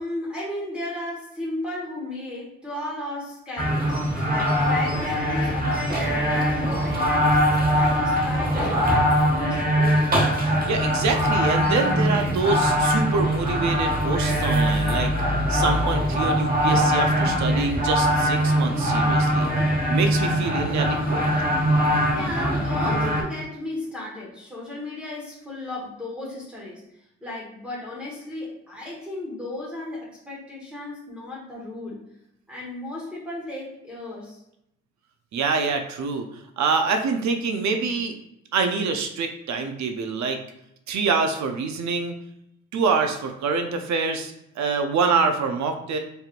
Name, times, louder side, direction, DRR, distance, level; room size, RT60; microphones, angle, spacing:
voice 1, 0.0-7.4 7.7-10.1 21.9-26.8 27.2-32.0 32.5-34.4, left 2 dB, 5° right, -7 dB, 1.5 m, -34 dB
sound 1, 3.6-23.2, equal, 30° right, 1.1 m, -22 dB
voice 2, 10.7-15.1 15.5-21.2 35.3-38.2 38.5-40.4 40.9-42.1 42.7-46.0, right 4 dB, 65° right, 6 dB, 0.7 m, -26 dB
4.3 x 3.3 x 2.5 m, 0.81 s
cardioid pair, 90°, 30 cm